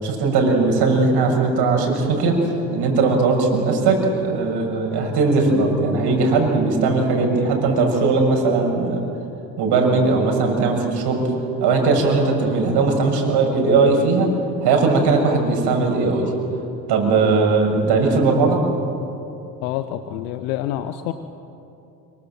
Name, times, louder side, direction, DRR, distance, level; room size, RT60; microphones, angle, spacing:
voice 1, 0.0-2.3 2.7-9.0 9.6-11.3 11.6-14.3 14.6-16.3 16.9-18.6, right 3 dB, 50° right, 2 dB, 7.0 m, -19 dB
voice 2, 19.6-21.1, left 12 dB, 65° left, 10 dB, 1.3 m, -27 dB
26.0 x 24.0 x 7.6 m, 2.8 s
hypercardioid pair, 70°, 49 cm